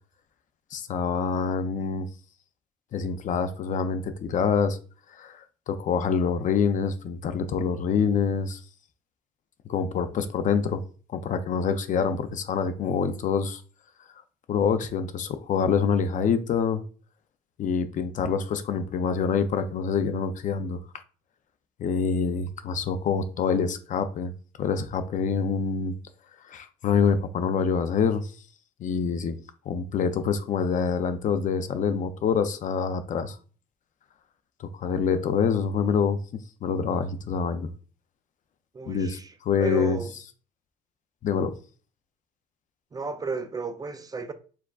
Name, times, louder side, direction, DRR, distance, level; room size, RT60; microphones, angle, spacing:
voice 1, 0.7-2.1 2.9-4.8 5.1-8.6 9.7-10.8 11.1-13.6 14.5-16.8 17.6-20.8 21.8-24.3 24.6-25.9 26.5-28.3 28.8-29.4 29.7-33.4 34.6-36.2 36.6-37.7 38.9-40.0 41.2-41.5, left 6 dB, 50° left, 0.5 m, -26 dB
voice 2, 38.7-39.3 39.6-40.1 42.9-44.3, right 4 dB, 20° right, 0.4 m, -33 dB
4.6 x 3.5 x 2.4 m
cardioid pair, 110°, 17 cm